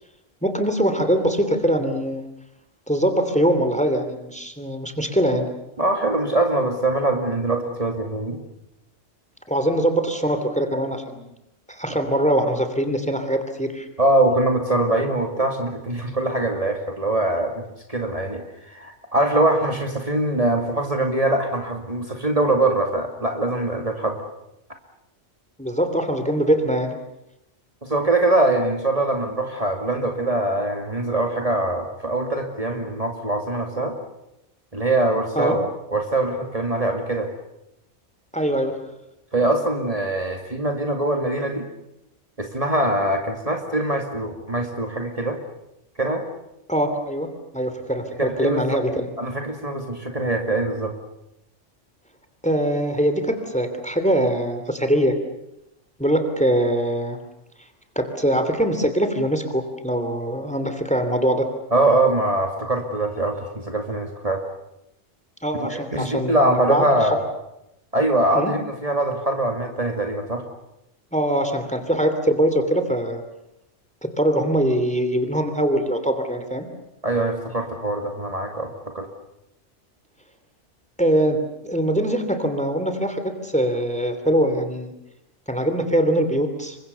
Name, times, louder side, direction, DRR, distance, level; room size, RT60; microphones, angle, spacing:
voice 1, 0.4-2.2 2.9-5.5 9.5-11.3 11.7-13.9 25.6-27.0 35.4-35.6 38.3-38.8 46.7-47.3 47.5-49.1 52.4-55.2 56.0-57.2 57.9-61.5 65.4-67.2 68.3-68.5 71.1-73.2 74.0-76.7 81.0-84.9 85.5-86.8, right 1 dB, 5° left, 8 dB, 2.9 m, -22 dB
voice 2, 5.8-8.4 11.9-12.0 14.0-24.2 27.8-34.0 34.7-35.6 35.9-37.3 39.3-41.7 42.4-45.4 46.0-46.2 48.2-48.6 49.2-50.9 61.7-64.4 65.6-67.3 67.9-70.5 77.0-78.7 78.9-79.1, right 2 dB, 30° right, 4 dB, 2.4 m, -23 dB
28.5 x 24.0 x 6.9 m, 0.85 s
omnidirectional pair, 1.2 m